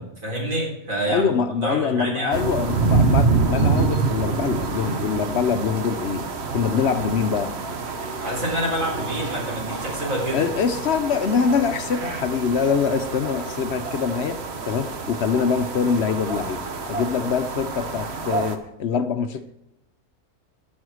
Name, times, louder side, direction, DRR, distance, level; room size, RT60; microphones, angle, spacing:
voice 1, 0.0-1.3 1.6-2.4 8.2-10.5, right 1 dB, 85° right, -2 dB, 3.9 m, -27 dB
voice 2, 1.1-6.3 6.5-7.5 10.3-19.4, left 6 dB, 60° left, 10 dB, 0.9 m, -24 dB
sound 1, 2.3-18.6, right 4 dB, 55° right, 1.2 m, -27 dB
13.0 x 6.4 x 6.2 m, 0.86 s
omnidirectional pair, 1.4 m